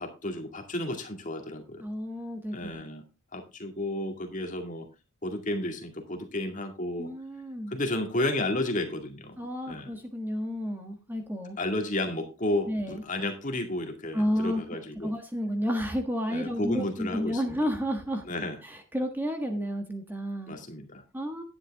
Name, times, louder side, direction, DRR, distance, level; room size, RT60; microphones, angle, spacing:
voice 1, 0.0-1.8 2.5-3.0 3.3-4.9 5.2-7.1 7.7-9.4 9.7-9.9 11.6-15.2 16.3-17.6 18.2-18.6 20.5-21.0, left 1 dB, 35° left, 5 dB, 2.1 m, -32 dB
voice 2, 1.8-2.8 7.0-7.7 9.4-11.6 12.7-12.9 14.1-14.6 15.0-18.2 18.6-20.5 21.1-21.4, equal, 10° right, 5 dB, 1.4 m, -31 dB
11.0 x 10.0 x 3.5 m, 0.26 s
head